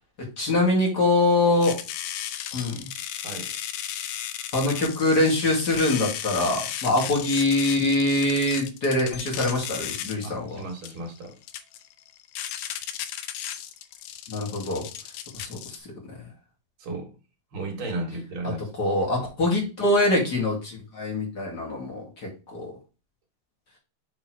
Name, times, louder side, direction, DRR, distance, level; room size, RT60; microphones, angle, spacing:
voice 1, 0.4-1.8 2.5-2.9 4.5-10.6 14.3-14.8 15.3-15.8 18.8-22.7, left 2 dB, 35° left, 2.6 m, -24 dB
sound 1, 1.6-15.8, left 11 dB, 80° left, 2.2 m, -35 dB
voice 2, 3.2-3.5 10.2-11.4 16.8-17.1 17.5-18.6, right 2 dB, 45° right, 2.4 m, -34 dB
6.2 x 3.8 x 4.6 m
omnidirectional pair, 3.6 m